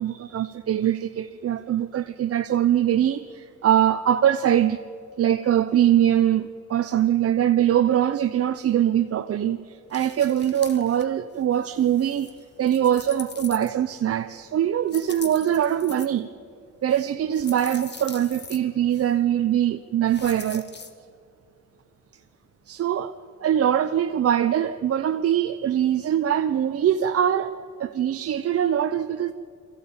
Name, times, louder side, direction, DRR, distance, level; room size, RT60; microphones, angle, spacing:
voice 1, 0.0-4.8 5.2-12.3 12.6-16.3 16.8-20.7 22.7-23.1 23.4-29.3, right 10 dB, 50° right, 0.7 m, -22 dB
sound 1, 9.9-11.0 11.4-14.0 14.8-16.1 16.9-18.6 18.9-19.1 20.1-20.9, left 4 dB, 35° left, 1.8 m, -42 dB
23.0 x 15.0 x 8.7 m
cardioid pair, 90°, 30 cm